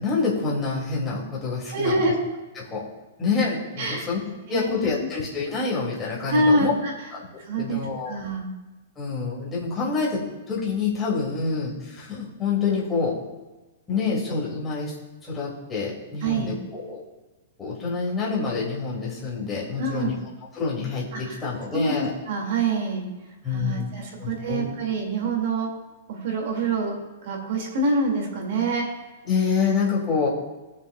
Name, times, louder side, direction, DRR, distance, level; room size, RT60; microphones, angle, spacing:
voice 1, 0.0-2.0 2.6-2.9 3.2-4.2 4.5-6.7 7.1-7.3 7.6-8.2 9.0-13.2 13.9-14.9 15.2-17.0 17.6-20.1 20.6-22.1 23.4-23.9 24.2-24.7 29.3-30.3, left 4 dB, 10° left, -6 dB, 2.6 m, -27 dB
voice 2, 1.7-2.1 3.8-4.1 4.5-4.9 6.3-6.9 7.4-7.8 8.1-8.5 16.2-16.5 19.8-20.1 21.1-21.3 21.7-23.0 23.5-25.7 26.1-27.0 27.2-28.9, right 2 dB, 50° right, 1 dB, 2.4 m, -25 dB
20.5 x 7.3 x 2.4 m, 1.2 s
hypercardioid pair, 165°, 0 cm